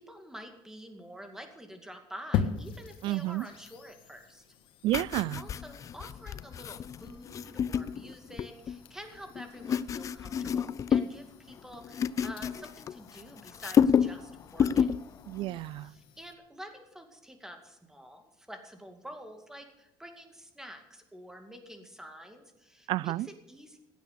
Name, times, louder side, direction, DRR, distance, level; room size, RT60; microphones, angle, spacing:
voice 1, 0.0-4.4 5.3-14.9 15.8-23.8, equal, 5° right, 2.2 m, -48 dB
sound 1, 2.3-16.3, left 7 dB, 70° left, 1.4 m, -42 dB
voice 2, 3.0-3.5 4.8-5.4 15.3-15.9 22.9-23.3, right 16 dB, 65° right, 0.4 m, -30 dB
sound 2, 4.9-8.8 9.3-11.2 11.5-13.2 13.5-14.2 14.5-15.0 15.4-15.6, left 8 dB, 35° left, 0.4 m, -29 dB
15.5 x 9.3 x 6.8 m
cardioid pair, 130°, 9 cm